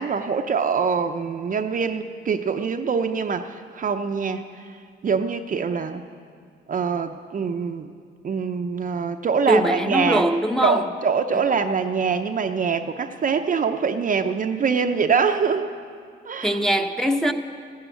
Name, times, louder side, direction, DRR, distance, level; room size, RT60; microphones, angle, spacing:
voice 1, 0.0-4.4 5.0-6.0 6.7-7.9 8.2-10.2 10.6-15.7 16.3-16.6, right 5 dB, 40° right, 6 dB, 0.7 m, -24 dB
voice 2, 9.5-10.9 11.3-11.4 16.4-17.3, equal, ahead, 3 dB, 0.9 m, -22 dB
14.0 x 10.5 x 9.1 m, 2.2 s
cardioid pair, 90°, 20 cm